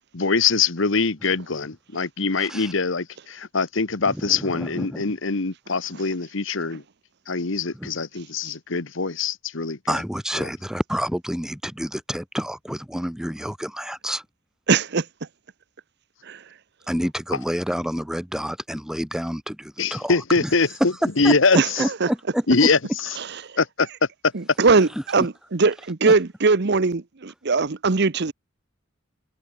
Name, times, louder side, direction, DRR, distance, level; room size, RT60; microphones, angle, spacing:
voice 1, 0.1-6.8 7.3-9.8 19.8-20.7 21.2-21.6 22.5-22.8 23.6-23.9, left 4 dB, 65° left, 1.3 m, -23 dB
voice 2, 2.3-2.7 4.0-5.2 7.7-7.9 9.9-14.3 16.9-20.5 21.2-22.7 23.3-23.5 24.7-24.8 25.2-25.3 26.1-26.2, equal, 5° right, 2.6 m, -29 dB
voice 3, 14.7-15.1 16.2-16.4 21.5-21.7 22.0-22.1 23.2-23.6 24.3-28.3, right 4 dB, 55° right, 0.9 m, -21 dB
head